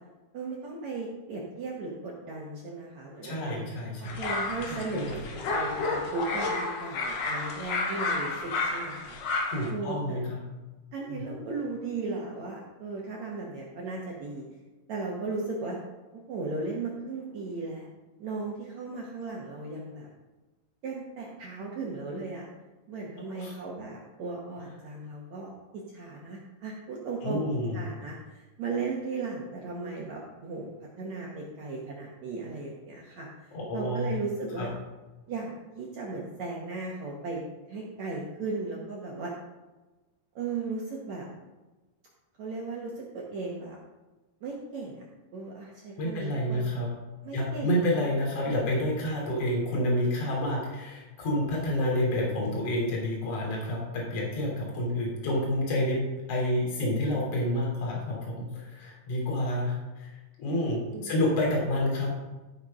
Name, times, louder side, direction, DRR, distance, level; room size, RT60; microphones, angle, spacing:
voice 1, 0.3-3.6 4.0-9.2 9.7-10.2 10.9-14.5 14.9-15.8 16.1-17.9 18.2-20.1 20.8-22.5 22.9-27.4 27.7-30.7 31.0-34.7 35.3-37.4 37.7-39.3 40.4-41.3 42.4-43.8 44.4-45.0 45.3-46.7 47.2-48.1 48.5-48.7 60.9-61.2, right 3 dB, 65° right, -3 dB, 1.7 m, -36 dB
voice 2, 3.2-4.2 4.9-5.1 9.5-10.4 11.0-11.2 23.4-23.5 27.2-27.8 33.5-34.1 34.6-34.7 46.0-46.9 47.3-56.0 56.3-59.7 60.0-60.1 60.4-62.1, left 1 dB, 40° left, -3 dB, 3.7 m, -29 dB
sound 1, 4.0-9.7, left 3 dB, 65° left, 2.4 m, -31 dB
14.5 x 5.0 x 5.3 m, 1.2 s
omnidirectional pair, 5.0 m